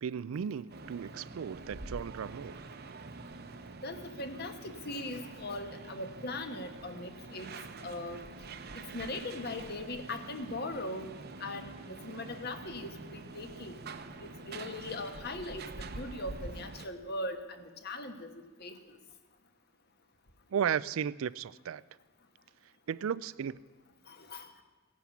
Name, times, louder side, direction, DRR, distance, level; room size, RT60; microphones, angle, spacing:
voice 1, 0.0-2.7 20.5-21.8 22.9-23.6, right 8 dB, 75° right, 0.4 m, -35 dB
sound 1, 0.7-16.9, right 3 dB, 50° right, 0.9 m, -46 dB
voice 2, 3.8-7.5 7.8-8.2 8.7-11.1 11.4-13.9 14.2-18.3 18.6-18.8 24.1-24.5, left 2 dB, 50° left, 1.3 m, -40 dB
17.5 x 10.5 x 7.1 m
head